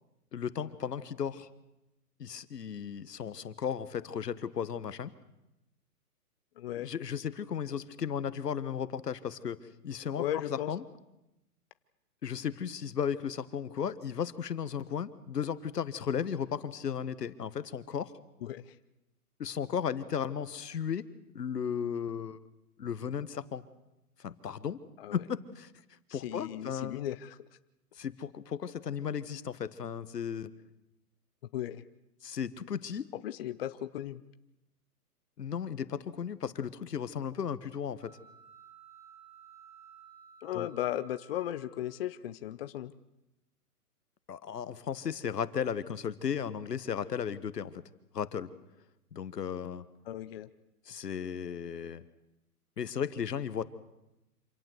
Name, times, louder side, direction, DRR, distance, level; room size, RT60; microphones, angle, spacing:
voice 1, 0.3-1.5 2.2-5.1 6.8-9.6 9.8-10.8 12.2-18.1 19.4-21.1 21.3-22.4 22.8-23.6 24.2-24.8 25.1-25.7 26.1-27.0 28.0-30.5 32.2-33.1 35.4-38.2 40.5-40.7 44.3-47.8 48.1-48.5 49.1-49.8 50.9-52.0 52.8-53.6, left 7 dB, 85° left, 14 dB, 1.6 m, -35 dB
voice 2, 6.6-6.9 10.2-10.7 18.4-18.7 25.0-25.2 26.1-27.4 31.5-31.8 33.2-34.2 40.4-42.9 50.1-50.5, left 12 dB, 40° left, 12 dB, 0.8 m, -36 dB
sound 1, 38.0-42.1, right 7 dB, 75° right, 7.9 m, -56 dB
27.0 x 17.5 x 8.1 m, 0.93 s
hypercardioid pair, 150°, 47 cm